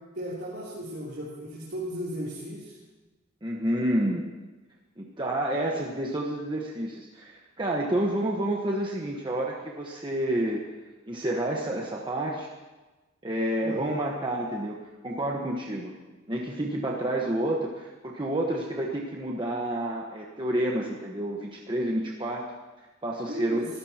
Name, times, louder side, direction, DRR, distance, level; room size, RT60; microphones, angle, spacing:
voice 1, 0.1-2.7 13.6-13.9 23.3-23.7, equal, 55° right, -8 dB, 3.2 m, -35 dB
voice 2, 3.4-4.2 5.0-10.6 11.1-12.5 13.2-15.9 16.3-22.5 23.0-23.6, right 1 dB, 25° right, -2 dB, 1.3 m, -29 dB
25.0 x 14.5 x 3.0 m, 1.2 s
head